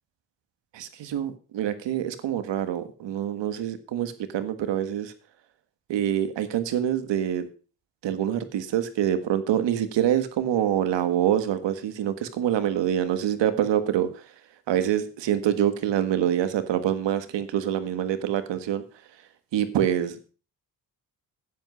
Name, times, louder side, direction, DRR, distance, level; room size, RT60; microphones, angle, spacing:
voice 1, 0.7-5.1 5.9-7.5 8.0-14.2 14.7-18.8 19.5-20.3, right 10 dB, 85° right, 11 dB, 1.6 m, -26 dB
10.5 x 8.2 x 6.2 m, 0.37 s
cardioid pair, 90°, 42 cm